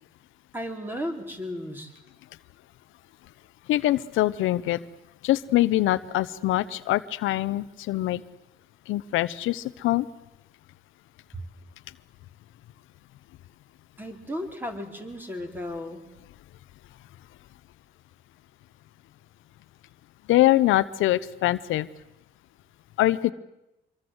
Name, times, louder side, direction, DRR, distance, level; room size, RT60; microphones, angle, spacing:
voice 1, 0.5-1.9 11.3-11.4 14.0-16.0, equal, 10° right, 4 dB, 4.6 m, -34 dB
voice 2, 3.7-4.8 5.2-8.2 8.9-10.1 20.3-21.9 23.0-23.3, left 15 dB, 90° left, 14 dB, 0.9 m, -23 dB
25.0 x 23.5 x 8.0 m, 0.92 s
cardioid pair, 90°, 20 cm